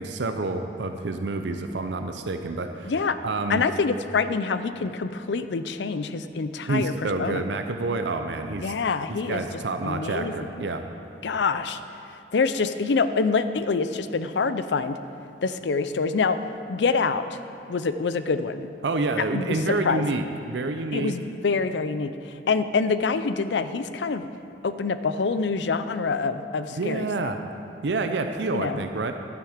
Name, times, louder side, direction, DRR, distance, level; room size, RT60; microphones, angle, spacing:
voice 1, 0.0-2.9 3.2-3.6 6.7-8.7 9.3-10.8 18.8-21.1 26.7-27.4 27.8-29.1, right 3 dB, 70° right, 6 dB, 0.6 m, -28 dB
voice 2, 2.8-3.2 3.5-7.4 8.6-9.4 9.8-10.6 11.2-11.8 12.3-15.0 15.4-16.4 16.7-17.2 17.7-18.7 19.3-20.2 20.9-24.3 24.6-27.3 28.5-28.8, left 4 dB, 70° left, 11 dB, 0.5 m, -26 dB
11.5 x 9.1 x 5.0 m, 2.7 s
head